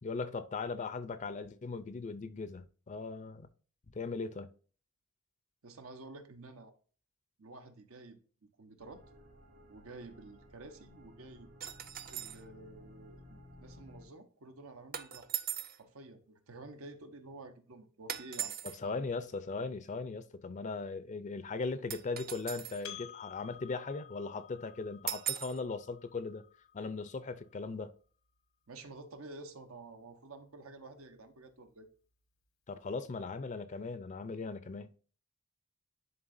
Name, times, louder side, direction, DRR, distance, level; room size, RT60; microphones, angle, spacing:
voice 1, 0.0-3.5 3.9-4.5 18.8-26.4 26.7-27.9 32.7-34.9, left 4 dB, 35° left, 0.4 m, -38 dB
voice 2, 5.6-6.7 7.4-9.0 9.7-11.5 12.1-15.3 15.8-19.1 28.7-31.9, right 2 dB, 85° right, 1.0 m, -51 dB
sound 1, 8.8-14.1, left 1 dB, 65° right, 2.9 m, -56 dB
sound 2, 11.6-12.4 14.9-15.8 18.1-18.8 21.9-22.8 25.1-25.6, right 10 dB, 45° right, 0.6 m, -39 dB
Percussion, 22.8-27.7, left 10 dB, 85° left, 1.1 m, -52 dB
11.0 x 3.7 x 2.6 m
head